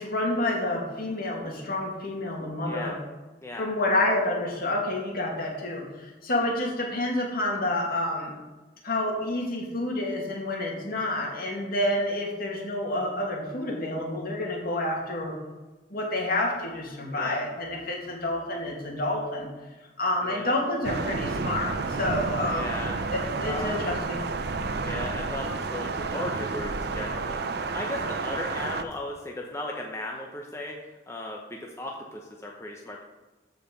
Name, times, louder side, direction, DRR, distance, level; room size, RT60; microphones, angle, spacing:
voice 1, 0.0-2.9 3.6-8.3 8.8-15.3 15.9-19.5 20.0-22.7 23.1-24.2, left 1 dB, 55° left, -1 dB, 2.4 m, -29 dB
voice 2, 2.7-3.0 3.4-3.7 6.4-6.5 17.1-17.5 20.2-20.5 22.4-23.0 23.5-23.8 24.8-27.4 27.7-33.0, left 1 dB, 15° left, 0 dB, 0.9 m, -36 dB
Thunder, 20.8-28.8, right 4 dB, 60° right, 0.7 m, -31 dB
14.0 x 5.0 x 5.3 m, 1.2 s
head